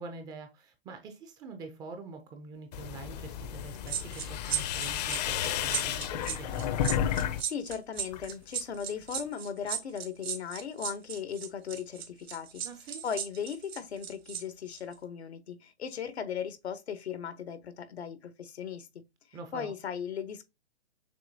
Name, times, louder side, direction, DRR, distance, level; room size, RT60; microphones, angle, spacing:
voice 1, 0.0-6.7 12.6-13.0 19.3-19.7, right 4 dB, 10° right, 0.4 m, -45 dB
sound 1, 2.7-7.4 7.7-8.3, left 10 dB, 40° left, 0.6 m, -32 dB
sound 2, 3.9-14.4 14.7-14.9, right 9 dB, 70° right, 1.3 m, -36 dB
voice 2, 7.4-12.6 13.0-19.0 19.5-20.4, left 7 dB, 80° left, 1.1 m, -37 dB
6.8 x 2.9 x 2.7 m
hypercardioid pair, 135°, 32 cm